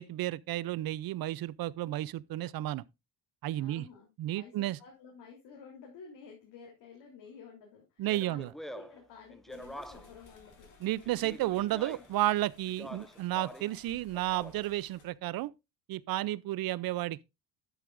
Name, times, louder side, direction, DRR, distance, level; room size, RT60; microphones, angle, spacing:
voice 1, 0.0-2.8 3.4-3.9 4.2-4.8 8.0-8.5 10.8-15.5 15.9-17.2, right 15 dB, 55° right, 0.5 m, -32 dB
voice 2, 3.5-8.4 8.7-10.7 12.8-13.0, left 6 dB, 70° left, 3.5 m, -52 dB
Speech, 8.0-10.2 11.0-12.2 12.7-13.8 14.1-14.8, equal, ahead, 0.4 m, -46 dB
sound 1, 9.5-15.0, left 4 dB, 45° left, 3.1 m, -59 dB
11.0 x 8.4 x 2.5 m
cardioid pair, 140°, 43 cm